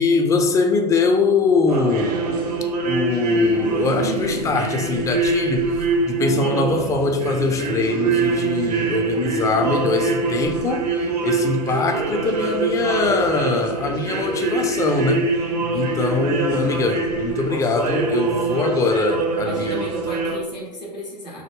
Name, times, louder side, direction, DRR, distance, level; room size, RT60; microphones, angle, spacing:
voice 1, 0.0-2.2 2.9-15.4 15.7-19.9, left 4 dB, 15° left, 0.3 m, -22 dB
sound 1, 1.7-20.4, right 3 dB, 65° right, 0.5 m, -24 dB
voice 2, 19.4-21.4, equal, 80° left, 1.1 m, -34 dB
3.0 x 2.0 x 3.4 m
figure-of-eight pair, 85°, 21 cm